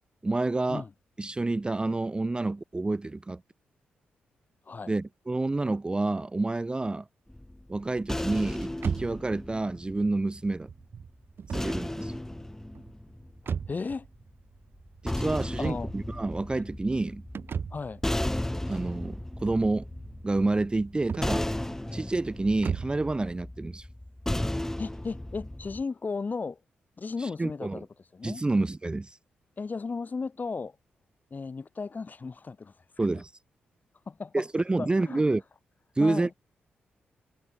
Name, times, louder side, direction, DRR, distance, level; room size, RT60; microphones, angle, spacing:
voice 1, 0.2-0.8 1.2-3.4 4.9-7.1 7.7-10.7 11.5-12.1 15.0-17.2 18.7-19.9 20.2-21.5 21.9-23.9 27.2-27.8 28.2-29.2 33.0-33.3 34.3-35.4 36.0-36.3, right 2 dB, 20° right, 0.4 m, -28 dB
sound 1, 7.3-10.6 11.5-13.8 14.7-25.8, left 1 dB, 10° left, 0.8 m, -35 dB
sound 2, 8.8-23.1, right 6 dB, 60° right, 1.7 m, -39 dB
voice 2, 13.7-14.1 15.6-15.9 17.7-18.0 24.8-26.6 27.0-27.9 28.1-28.4 29.6-30.8 31.3-32.7 34.1-34.4 34.8-35.2 36.0-36.3, left 4 dB, 45° left, 2.5 m, -35 dB
supercardioid pair, 45°, 4 cm